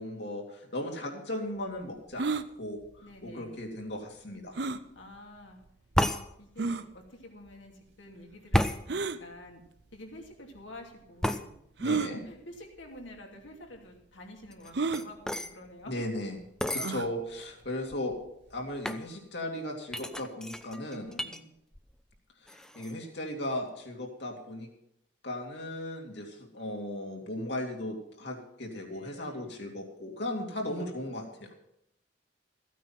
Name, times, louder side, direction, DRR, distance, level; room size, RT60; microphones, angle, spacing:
voice 1, 0.0-2.8 3.2-4.6 11.8-12.2 15.9-16.4 16.7-18.1 18.5-21.1 22.4-24.7 25.2-31.5, left 1 dB, 65° left, 1 dB, 2.7 m, -36 dB
sound 1, 2.2-2.5 4.6-4.8 5.6-5.7 6.6-6.9 8.9-9.2 10.3-10.4 11.8-12.1 13.0-13.2 13.5-13.6 14.7-15.1 16.8-17.1, right 4 dB, 60° right, 0.6 m, -31 dB
voice 2, 3.0-3.5 4.9-5.6 6.4-9.6 9.9-11.5 12.0-16.0 21.0-21.5 28.9-29.5, left 1 dB, 85° left, 1 dB, 2.8 m, -48 dB
sound 2, 5.9-6.2 8.5-8.8 11.2-11.4 14.5-15.5 16.6-16.9 17.6-17.7 17.9-18.3 18.8-19.0 19.9-21.4 21.7-22.2 22.5-22.9, equal, 5° left, 0.5 m, -31 dB
14.5 x 9.3 x 5.9 m, 0.77 s
head